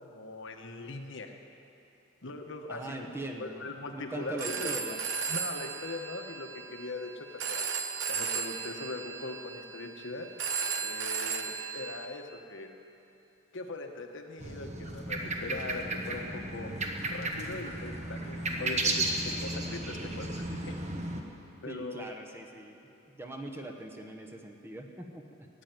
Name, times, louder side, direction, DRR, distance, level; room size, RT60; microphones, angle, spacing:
voice 1, 0.0-1.3 2.2-3.1 3.4-5.0 5.3-7.6 8.1-10.3 10.8-12.7 13.5-20.7 21.6-22.1, left 2 dB, 60° left, 4 dB, 1.1 m, -41 dB
voice 2, 2.7-3.6 3.9-5.0 21.6-22.8 23.1-25.5, right 2 dB, 10° right, 1 dB, 1.1 m, -41 dB
Telephone, 4.2-12.1, right 6 dB, 65° right, 1.0 m, -36 dB
sound 1, 14.4-21.2, right 2 dB, 35° right, 1.2 m, -34 dB
14.0 x 8.8 x 9.4 m, 2.8 s
head